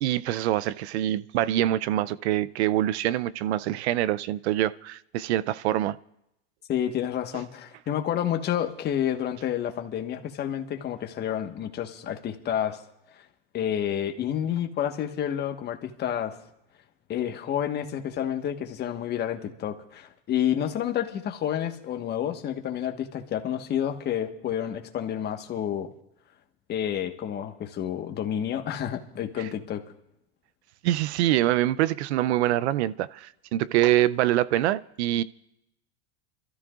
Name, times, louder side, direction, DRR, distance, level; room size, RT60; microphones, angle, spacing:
voice 1, 0.0-6.0 7.3-7.4 29.4-29.5 30.8-35.2, right 13 dB, 80° right, 0.6 m, -25 dB
voice 2, 6.7-12.8 13.5-16.4 17.1-25.9 26.7-29.8, left 10 dB, 30° left, 1.4 m, -29 dB
27.5 x 13.5 x 2.5 m
supercardioid pair, 135°, 33 cm